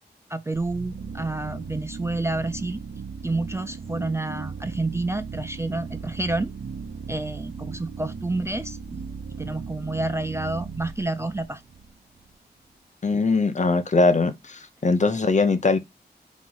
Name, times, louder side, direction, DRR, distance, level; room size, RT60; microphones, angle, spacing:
voice 1, 0.3-2.8 3.2-6.5 7.1-9.0 9.4-11.6, right 2 dB, 15° right, 0.3 m, -29 dB
sound 1, 0.5-12.3, right 5 dB, 65° right, 0.5 m, -37 dB
voice 2, 13.0-15.8, left 3 dB, 40° left, 0.8 m, -21 dB
3.6 x 3.0 x 3.9 m
wide cardioid pair, 100°, 18 cm